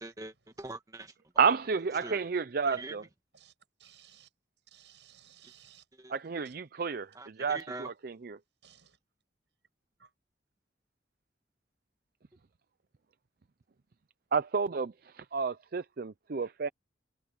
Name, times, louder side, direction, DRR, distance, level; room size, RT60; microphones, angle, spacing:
voice 1, 0.0-1.1 2.0-2.2 2.7-3.0 5.4-5.5 6.0-6.2 7.1-7.9, right 2 dB, 20° right, 1.4 m, -43 dB
voice 2, 1.4-3.0 6.1-8.4 14.3-16.7, right 5 dB, 55° right, 0.6 m, -31 dB
voice 3, 3.8-4.3 4.7-5.8 6.5-6.6 8.6-9.0 10.0-10.1, right 10 dB, 80° right, 7.1 m, -58 dB
head